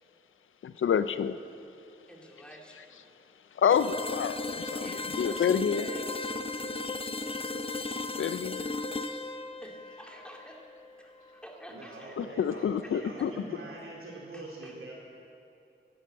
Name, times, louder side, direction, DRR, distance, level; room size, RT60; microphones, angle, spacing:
voice 1, 0.6-1.4 3.5-5.9 8.2-8.7 12.2-13.3, left 7 dB, 70° left, 13 dB, 0.5 m, -28 dB
voice 2, 2.1-3.0 4.8-5.4 5.8-6.5 7.0-7.4 9.6-10.6 11.0-12.2 12.8-13.3 14.3-14.9, equal, 5° left, 0 dB, 2.6 m, -50 dB
sound 1, 3.7-11.5, left 3 dB, 25° left, 0.7 m, -36 dB
voice 3, 11.7-14.9, right 2 dB, 80° right, -2 dB, 3.1 m, -43 dB
12.0 x 11.0 x 7.7 m, 2.7 s
cardioid pair, 45°, 21 cm